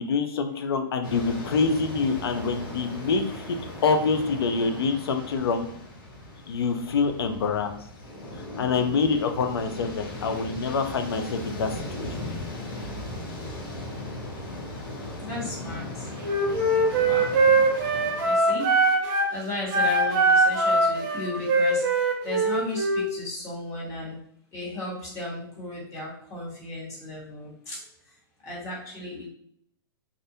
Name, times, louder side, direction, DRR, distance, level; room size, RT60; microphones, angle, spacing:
voice 1, 0.0-3.2 3.5-5.7 6.5-7.7 8.6-11.7 12.0-12.1, left 4 dB, 85° left, 7 dB, 0.4 m, -26 dB
sound 1, 1.0-18.3, left 1 dB, 65° left, 0.9 m, -38 dB
voice 2, 15.2-16.1 17.0-17.3 18.2-18.7 19.0-24.2 24.5-27.8 28.4-29.3, left 2 dB, 25° left, -5 dB, 1.1 m, -35 dB
Wind instrument woodwind instrument, 16.2-19.3 19.7-23.1, right 2 dB, 50° right, 0.7 m, -22 dB
2.5 x 2.1 x 2.6 m, 0.67 s
hypercardioid pair, 135°, 12 cm